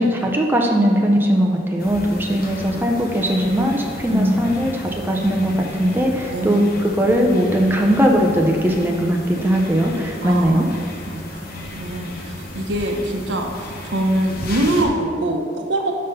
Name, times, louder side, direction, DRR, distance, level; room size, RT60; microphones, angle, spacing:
voice 1, 0.0-4.7 5.0-10.7, equal, 10° right, 0 dB, 0.6 m, -19 dB
sound 1, 1.8-14.8, left 1 dB, 55° left, 1.0 m, -34 dB
voice 2, 4.1-4.5 6.3-6.8 10.2-10.6 11.1-15.9, right 1 dB, 80° right, 2 dB, 0.8 m, -23 dB
5.4 x 5.4 x 5.6 m, 2.3 s
head